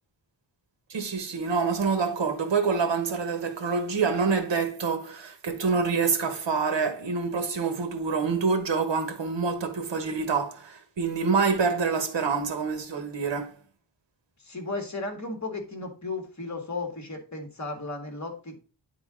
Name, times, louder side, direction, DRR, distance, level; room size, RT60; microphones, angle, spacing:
voice 1, 0.9-13.6, right 5 dB, 70° right, 1.2 m, -26 dB
voice 2, 14.4-18.6, left 3 dB, 40° left, 1.8 m, -35 dB
9.5 x 3.9 x 3.7 m
wide cardioid pair, 105°, 45 cm